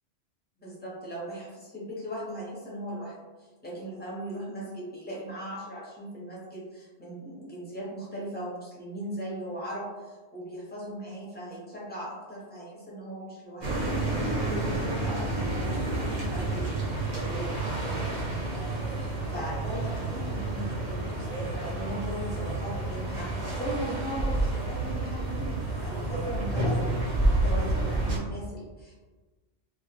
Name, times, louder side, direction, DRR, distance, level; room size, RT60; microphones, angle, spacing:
voice 1, 0.6-13.9 14.4-18.4 18.9-28.9, right 1 dB, 10° left, -7 dB, 0.5 m, -39 dB
sound 1, 13.6-28.2, right 2 dB, 50° right, 0.6 m, -29 dB
2.2 x 2.1 x 2.7 m, 1.3 s
omnidirectional pair, 1.2 m